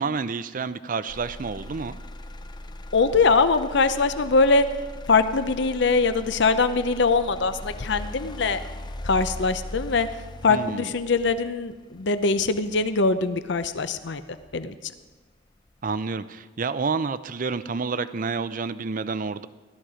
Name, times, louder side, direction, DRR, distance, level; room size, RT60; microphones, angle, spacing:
voice 1, 0.0-2.0 10.5-10.9 15.8-19.5, right 4 dB, 45° right, 14 dB, 0.5 m, -29 dB
Motor vehicle (road), 1.1-15.1 15.6-16.1, left 1 dB, 20° left, 0.5 m, -40 dB
voice 2, 2.9-4.7 5.1-8.6 9.0-10.1 10.4-14.2 14.5-14.7, left 4 dB, 60° left, 11 dB, 0.7 m, -22 dB
16.5 x 12.5 x 5.0 m, 1.3 s
head